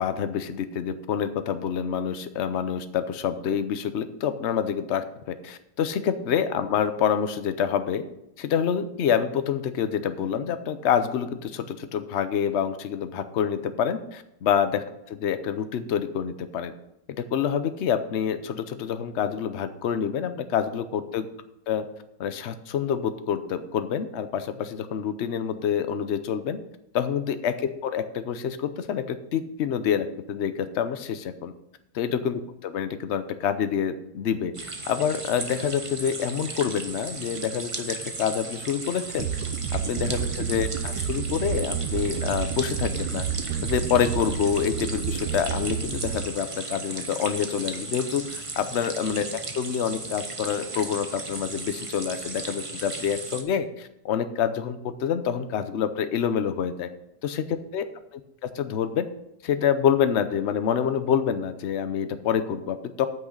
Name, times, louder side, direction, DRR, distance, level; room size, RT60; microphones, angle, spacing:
voice 1, 0.0-8.0 8.4-16.7 17.2-21.3 21.7-21.8 22.2-26.6 26.9-31.5 31.9-39.3 39.7-43.2 43.6-56.9 57.2-57.9 58.4-59.1 59.4-63.1, left 8 dB, 60° left, 10 dB, 0.7 m, -27 dB
sound 1, 34.5-53.4, right 3 dB, 25° right, 0.7 m, -36 dB
sound 2, 39.2-46.2, right 8 dB, 70° right, 1.0 m, -30 dB
9.3 x 6.1 x 6.5 m, 0.84 s
omnidirectional pair, 1.9 m